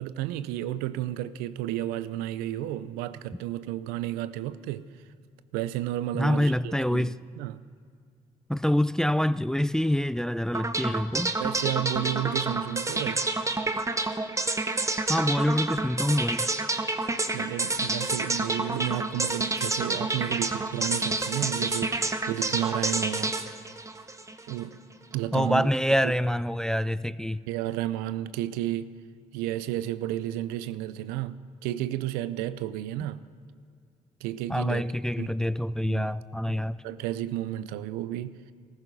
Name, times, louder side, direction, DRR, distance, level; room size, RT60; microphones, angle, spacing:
voice 1, 0.0-4.9 5.5-7.6 11.4-13.2 17.3-23.4 24.5-24.8 25.1-25.7 26.0-26.1 27.5-28.9 29.3-33.3 34.2-35.4 35.8-36.1 36.5-36.6 36.8-38.4, right 13 dB, 85° right, 0.5 m, -32 dB
voice 2, 6.1-7.2 8.5-11.4 15.1-16.5 25.3-27.4 34.5-36.8, left 1 dB, 5° left, 0.3 m, -26 dB
sound 1, 10.5-24.6, right 2 dB, 20° right, 1.1 m, -29 dB
15.0 x 14.0 x 5.3 m
supercardioid pair, 55°, 15 cm